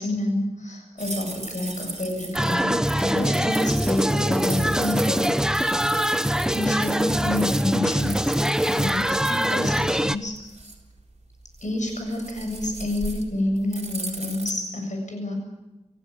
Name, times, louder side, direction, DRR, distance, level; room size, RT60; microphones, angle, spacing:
voice 1, 0.0-5.3 6.5-8.3 8.7-10.4 11.6-15.4, left 1 dB, 85° left, 3 dB, 7.4 m, -28 dB
sound 1, 1.0-14.5, right 2 dB, 60° right, 4.1 m, -38 dB
sound 2, 2.3-10.2, equal, 5° right, 0.8 m, -23 dB
28.5 x 15.5 x 8.6 m, 1.1 s
wide cardioid pair, 60°, 12 cm